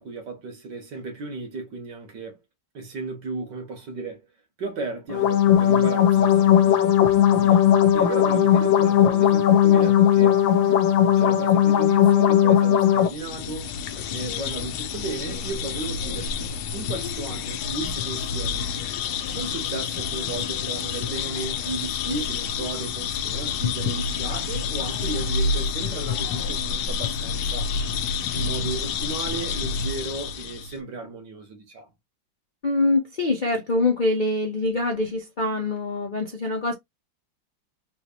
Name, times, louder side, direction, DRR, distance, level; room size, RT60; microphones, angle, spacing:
voice 1, 0.0-2.4 2.7-4.3 4.6-7.0 7.3-10.4 11.2-13.7 14.1-18.6 19.3-27.7 28.3-31.9, right 3 dB, 65° right, 2.0 m, -35 dB
sound 1, 5.1-13.1, left 10 dB, 90° left, 1.4 m, -17 dB
sound 2, 13.0-30.8, left 6 dB, 70° left, 1.1 m, -29 dB
voice 2, 32.6-36.7, left 2 dB, 45° left, 0.6 m, -24 dB
4.1 x 2.9 x 2.8 m
omnidirectional pair, 2.1 m